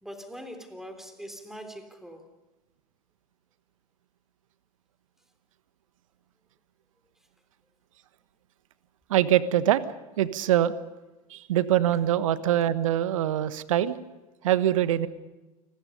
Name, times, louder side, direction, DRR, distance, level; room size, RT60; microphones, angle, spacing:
voice 1, 0.0-2.3, equal, ahead, 6 dB, 3.6 m, -42 dB
voice 2, 9.1-9.8 10.2-10.7 11.3-14.0 14.4-15.1, right 12 dB, 65° right, 15 dB, 1.3 m, -23 dB
29.0 x 20.5 x 5.4 m, 1.1 s
figure-of-eight pair, 85°, 19 cm